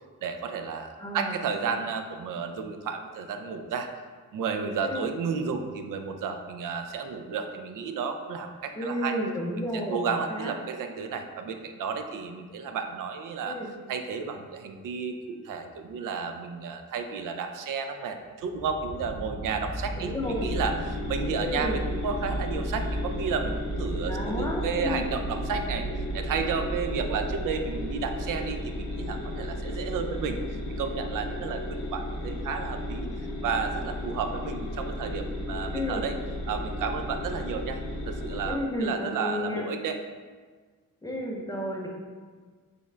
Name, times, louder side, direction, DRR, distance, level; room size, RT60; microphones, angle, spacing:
voice 1, 0.2-3.9 4.3-9.2 9.9-13.6 13.9-25.9 26.1-33.1 33.4-36.2 36.5-40.0, right 5 dB, 75° right, 6 dB, 0.5 m, -32 dB
voice 2, 1.0-1.4 4.8-5.1 8.7-10.5 13.4-13.7 20.0-20.4 21.4-21.8 24.0-25.1 35.7-36.0 38.4-39.7 41.0-41.9, left 1 dB, 10° left, -1 dB, 0.4 m, -32 dB
sound 1, 18.4-30.8 31.4-31.5, right 2 dB, 55° right, 1.1 m, -39 dB
sound 2, 20.2-38.5, left 1 dB, 65° left, 0.7 m, -34 dB
4.1 x 3.6 x 3.2 m, 1.5 s
wide cardioid pair, 155°, 32 cm